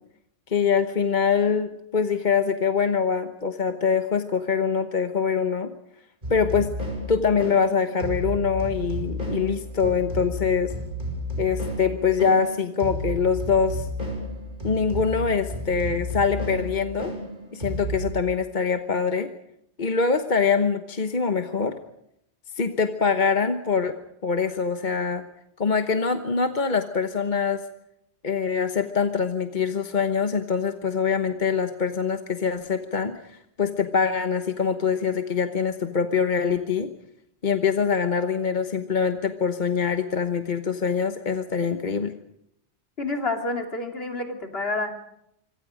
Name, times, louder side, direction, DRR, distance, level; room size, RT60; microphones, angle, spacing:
voice 1, 0.5-5.7 6.3-6.7 7.1-10.7 11.4-13.9 14.6-17.1 17.5-19.3 19.8-21.8 22.5-24.0 24.2-25.2 25.6-27.6 28.2-36.9 37.4-42.1, left 6 dB, 45° left, 7 dB, 1.3 m, -24 dB
sound 1, 6.2-18.1, equal, 50° right, 6.0 m, -32 dB
voice 2, 43.0-44.9, left 2 dB, 65° left, 3 dB, 3.1 m, -28 dB
25.5 x 25.5 x 5.1 m, 0.77 s
omnidirectional pair, 1.1 m